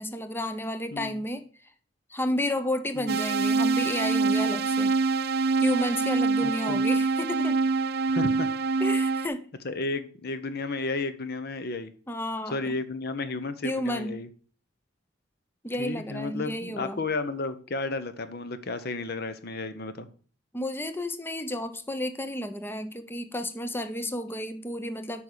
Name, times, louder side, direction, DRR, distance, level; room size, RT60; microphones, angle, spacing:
voice 1, 0.0-1.7 2.1-5.0 5.6-7.6 8.8-9.5 12.1-12.7 13.6-14.2 15.6-17.0 20.5-25.2, left 1 dB, 10° left, 0.7 m, -32 dB
voice 2, 0.9-1.2 3.0-3.1 6.4-6.8 8.1-8.5 9.6-11.9 12.5-14.3 15.8-20.1, left 3 dB, 55° left, 0.9 m, -33 dB
sound 1, 3.1-9.3, right 4 dB, 55° right, 0.5 m, -25 dB
8.5 x 5.5 x 4.8 m
head